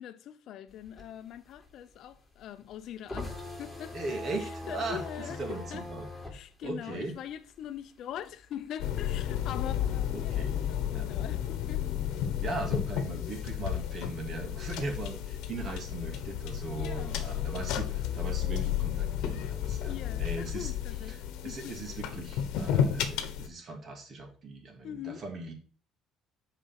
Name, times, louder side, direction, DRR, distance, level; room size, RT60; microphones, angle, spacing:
voice 1, 0.0-4.0 4.7-5.8 6.3-11.9 13.0-13.2 16.8-17.2 19.9-21.7 24.8-25.2, left 10 dB, 65° left, 0.7 m, -42 dB
sound 1, 0.7-7.8 8.1-9.9, left 2 dB, 5° left, 2.9 m, -42 dB
voice 2, 3.9-6.1 6.6-7.1 10.1-10.6 10.9-11.1 12.4-20.7 21.1-21.2 21.4-25.5, right 3 dB, 45° right, 2.6 m, -39 dB
sound 2, 8.8-23.5, left 10 dB, 80° left, 1.1 m, -32 dB
7.2 x 5.0 x 5.8 m
cardioid pair, 100°, 0 cm